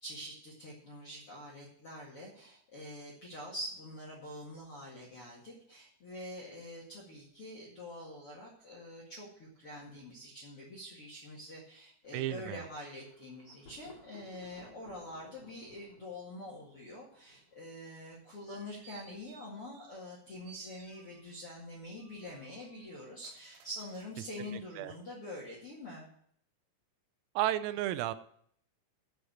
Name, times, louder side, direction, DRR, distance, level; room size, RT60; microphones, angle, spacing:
voice 1, 0.0-26.1, left 1 dB, 55° left, -2 dB, 1.5 m, -45 dB
Thunder, 12.0-17.9, left 2 dB, 35° left, 1.9 m, -60 dB
voice 2, 12.1-12.6 24.4-24.9 27.4-28.2, right 14 dB, 85° right, 13 dB, 3.4 m, -33 dB
sound 1, 18.3-20.2 20.4-21.5 22.0-24.6 25.1-25.2, right 6 dB, 70° right, 2.9 m, -59 dB
9.4 x 6.6 x 8.5 m, 0.65 s
omnidirectional pair, 6.0 m